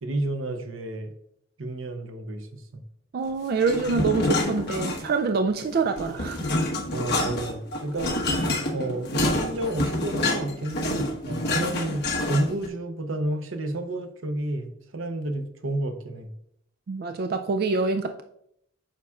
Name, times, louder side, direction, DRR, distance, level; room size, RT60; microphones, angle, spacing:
voice 1, 0.0-1.1 1.6-2.6 6.9-8.4 8.7-16.3, right 1 dB, 85° right, 7 dB, 0.8 m, -30 dB
voice 2, 3.1-6.5 11.6-11.7 16.9-18.2, right 4 dB, 50° right, 6 dB, 0.3 m, -26 dB
sound 1, 3.6-5.3 5.6-12.7, left 1 dB, 55° left, 1.3 m, -27 dB
8.8 x 5.7 x 2.4 m, 0.75 s
head